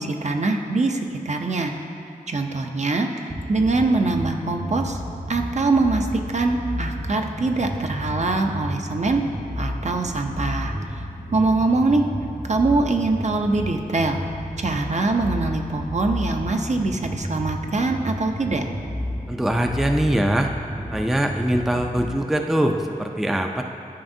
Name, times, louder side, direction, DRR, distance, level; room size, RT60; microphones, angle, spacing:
voice 1, 0.0-1.7 2.3-5.0 5.3-9.2 9.6-12.1 12.4-14.2 14.6-18.6, right 3 dB, 50° right, 3 dB, 0.6 m, -23 dB
sound 1, 3.3-22.1, equal, 70° right, 1.4 m, -32 dB
voice 2, 19.3-20.5 20.9-23.6, right 1 dB, ahead, 4 dB, 0.4 m, -22 dB
12.5 x 4.9 x 2.7 m, 2.7 s
wide cardioid pair, 75°, 15 cm